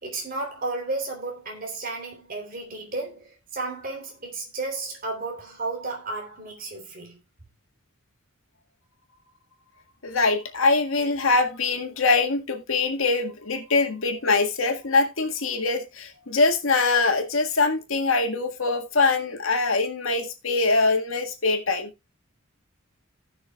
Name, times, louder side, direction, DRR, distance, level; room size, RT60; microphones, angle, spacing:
voice 1, 0.0-7.2, right 3 dB, 45° right, 3.2 m, -33 dB
voice 2, 10.0-21.9, left 3 dB, 80° left, 1.8 m, -23 dB
18.0 x 6.3 x 2.3 m
head